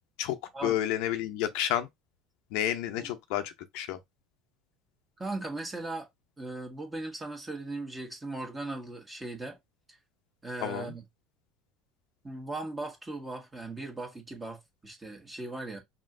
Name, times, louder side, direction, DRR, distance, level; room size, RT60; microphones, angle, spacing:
voice 1, 0.6-1.9 2.5-4.0 10.6-10.9, left 12 dB, 60° left, 0.7 m, -30 dB
voice 2, 5.2-6.1 6.4-9.6 9.9-10.0 10.4-11.0 12.2-15.8, right 2 dB, 15° right, 1.6 m, -38 dB
5.3 x 2.8 x 2.6 m
figure-of-eight pair, 70°, 0 cm